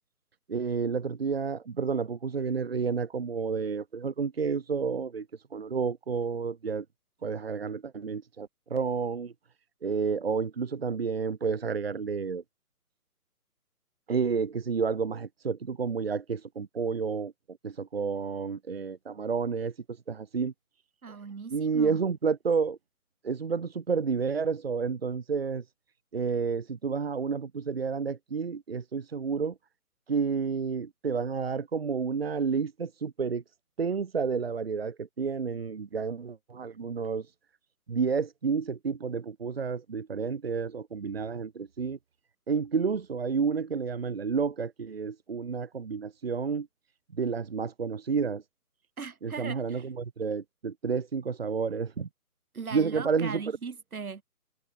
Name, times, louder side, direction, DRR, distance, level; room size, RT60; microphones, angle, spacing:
voice 1, 0.5-5.3 5.5-6.8 7.2-9.3 9.8-12.4 14.1-17.3 17.6-19.7 20.1-20.5 21.5-22.8 23.2-25.6 26.1-29.5 30.1-33.4 33.8-37.3 37.9-42.0 42.5-46.7 47.1-48.4 49.2-52.1 52.7-53.4, right 5 dB, 40° right, 1.5 m, -30 dB
voice 2, 21.0-22.0 49.0-49.9 52.5-54.2, right 5 dB, 65° right, 2.3 m, -39 dB
hypercardioid pair, 175°, 46 cm